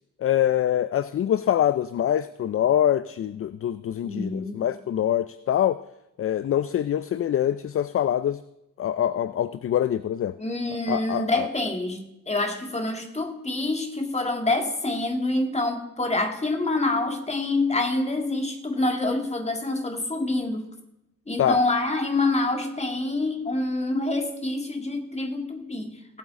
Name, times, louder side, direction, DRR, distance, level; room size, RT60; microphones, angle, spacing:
voice 1, 0.2-5.8 6.2-8.4 8.8-10.4 10.9-11.5 21.4-21.6, left 10 dB, 45° left, 15 dB, 0.4 m, -24 dB
voice 2, 4.0-4.6 10.4-20.6 21.3-26.2, left 2 dB, 20° left, 4 dB, 1.8 m, -26 dB
18.5 x 8.1 x 3.7 m, 0.88 s
cardioid pair, 75°, 31 cm